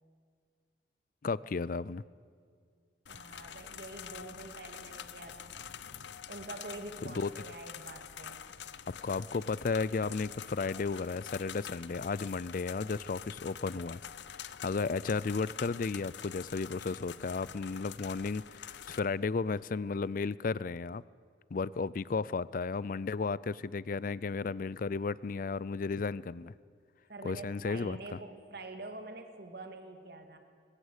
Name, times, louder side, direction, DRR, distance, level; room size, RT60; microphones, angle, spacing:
voice 1, 1.2-2.0 7.0-7.3 9.0-14.0 14.4-21.0 21.5-26.5 27.2-28.2, left 4 dB, 50° left, 21 dB, 0.4 m, -34 dB
sound 1, 3.1-19.0, left 8 dB, 80° left, 0.7 m, -46 dB
voice 2, 3.1-5.5 6.3-8.4 27.1-30.4, right 2 dB, 60° right, 6 dB, 2.1 m, -46 dB
20.5 x 17.0 x 8.2 m, 2.2 s
head